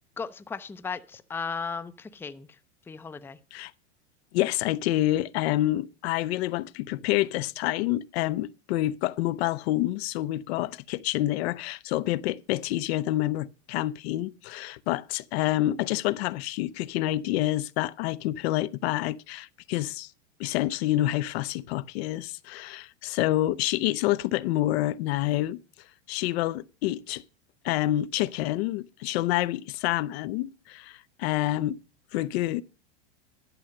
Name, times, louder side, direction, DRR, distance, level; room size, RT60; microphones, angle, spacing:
voice 1, 0.2-2.6 2.9-3.4, left 5 dB, 5° left, 0.5 m, -36 dB
voice 2, 4.3-20.1 20.4-25.6 26.1-27.2 27.6-31.8 32.1-32.6, left 15 dB, 60° left, 0.6 m, -28 dB
12.0 x 6.5 x 6.4 m
hypercardioid pair, 115°, 36 cm